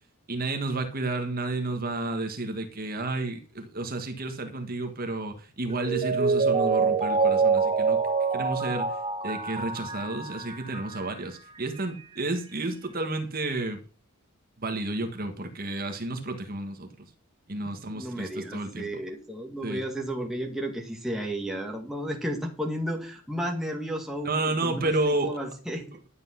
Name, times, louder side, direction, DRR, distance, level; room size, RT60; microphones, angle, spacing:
voice 1, 0.3-8.0 8.3-9.0 9.2-13.8 14.6-17.1 17.5-18.9 19.6-19.8 24.2-25.4, right 2 dB, 40° right, 6 dB, 1.6 m, -31 dB
Mallet percussion, 5.7-11.2 11.6-11.7, right 4 dB, 25° right, 2.1 m, -26 dB
voice 2, 17.9-25.8, equal, ahead, 0 dB, 2.4 m, -33 dB
12.0 x 8.1 x 5.8 m, 0.37 s
head